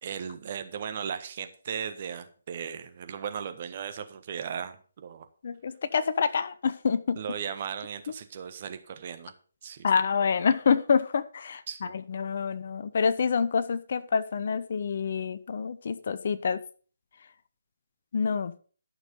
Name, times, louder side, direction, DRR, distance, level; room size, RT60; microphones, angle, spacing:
voice 1, 0.0-5.2 7.2-9.3 9.6-9.9 11.7-11.9, right 7 dB, 40° right, 8 dB, 1.3 m, -37 dB
voice 2, 5.4-7.2 9.8-16.6 18.1-18.5, left 6 dB, 50° left, 14 dB, 0.7 m, -27 dB
12.0 x 6.4 x 5.3 m, 0.40 s
figure-of-eight pair, 145°, 0 cm